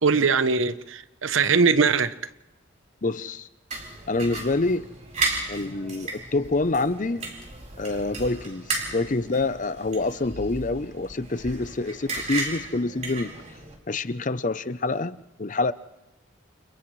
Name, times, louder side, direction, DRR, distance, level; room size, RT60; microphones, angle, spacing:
voice 1, 0.0-2.1, right 5 dB, 85° right, 0.9 m, -21 dB
voice 2, 3.0-3.5 4.1-4.9 5.5-7.3 7.8-13.3 13.9-15.7, left 2 dB, 40° left, 0.7 m, -27 dB
sound 1, 3.7-13.7, right 3 dB, 35° right, 4.4 m, -34 dB
30.0 x 29.0 x 3.3 m
head